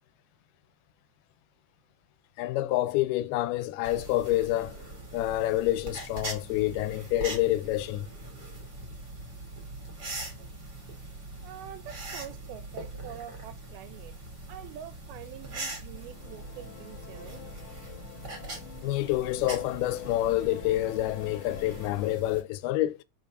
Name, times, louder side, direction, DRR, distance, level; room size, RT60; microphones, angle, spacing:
voice 1, 2.4-4.8 5.1-8.1 18.8-23.0, left 15 dB, 85° left, 2.6 m, -28 dB
sound 1, 3.8-22.4, right 2 dB, 30° right, 2.4 m, -42 dB
voice 2, 11.4-14.1 14.5-17.4, right 11 dB, 80° right, 2.6 m, -45 dB
sound 2, 15.9-22.2, left 12 dB, 70° left, 2.1 m, -47 dB
5.6 x 5.4 x 6.1 m
omnidirectional pair, 4.4 m